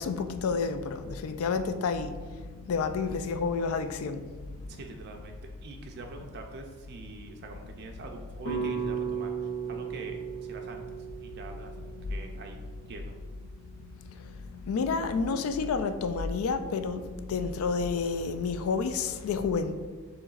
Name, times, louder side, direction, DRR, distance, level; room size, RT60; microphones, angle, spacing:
voice 1, 0.0-2.1 2.7-4.2 14.7-17.0 17.3-19.9, left 5 dB, 75° left, 0.3 m, -29 dB
voice 2, 4.7-12.6 12.9-13.1, right 3 dB, 50° right, 0.4 m, -44 dB
sound 1, 8.5-12.7, right 6 dB, 60° left, 0.9 m, -35 dB
6.5 x 3.0 x 2.4 m
head